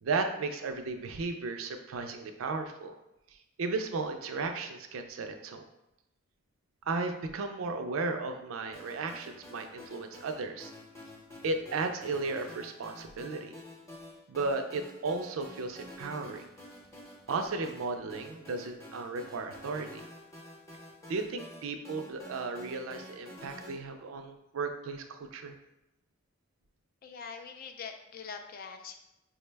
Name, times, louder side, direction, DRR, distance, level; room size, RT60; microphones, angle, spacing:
voice 1, 0.0-2.9 3.6-5.6 6.9-10.7 11.4-13.5 14.3-16.4 17.3-20.0 21.1-25.6, right 3 dB, 70° right, 6 dB, 0.4 m, -35 dB
sound 1, 8.7-23.7, left 1 dB, 15° left, 0.7 m, -49 dB
voice 2, 27.0-29.0, left 6 dB, 45° left, 5 dB, 0.3 m, -43 dB
4.6 x 2.1 x 3.3 m, 0.90 s
head